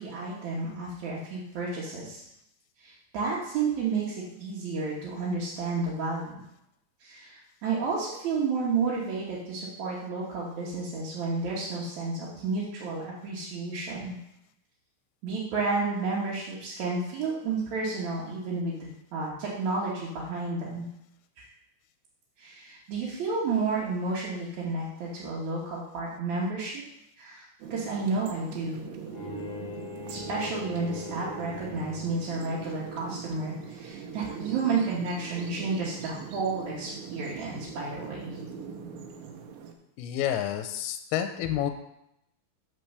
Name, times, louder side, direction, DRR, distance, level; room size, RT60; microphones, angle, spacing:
voice 1, 0.0-2.2 2.8-6.4 7.0-14.2 15.2-18.7 19.1-20.9 21.4-21.5 22.4-26.8 27.2-27.5 27.7-28.8 30.1-38.3, right 4 dB, 60° right, -6 dB, 2.2 m, -31 dB
sound 1, 27.6-39.7, right 6 dB, 75° right, 2.1 m, -41 dB
Bowed string instrument, 29.1-32.3, left 3 dB, 55° left, 1.5 m, -41 dB
voice 2, 40.0-41.7, left 10 dB, 85° left, 7 dB, 2.4 m, -29 dB
7.5 x 4.6 x 6.6 m, 0.81 s
omnidirectional pair, 4.6 m